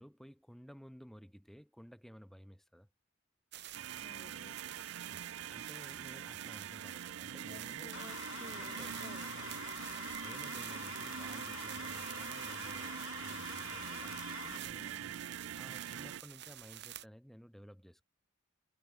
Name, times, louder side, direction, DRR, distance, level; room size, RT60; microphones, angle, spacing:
voice 1, 0.0-2.9 5.1-7.9 8.6-9.1 9.3-9.5 10.2-15.2 15.6-18.0, equal, ahead, 2.4 m, -55 dB
sound 1, 3.5-17.0, right 13 dB, 55° right, 1.0 m, -49 dB
sound 2, 3.7-16.2, right 9 dB, 80° right, 0.4 m, -44 dB
voice 2, 3.9-4.5 7.5-9.5 14.7-15.2, left 1 dB, 35° left, 4.5 m, -55 dB
sound 3, 7.9-14.6, left 8 dB, 75° left, 0.5 m, -47 dB
head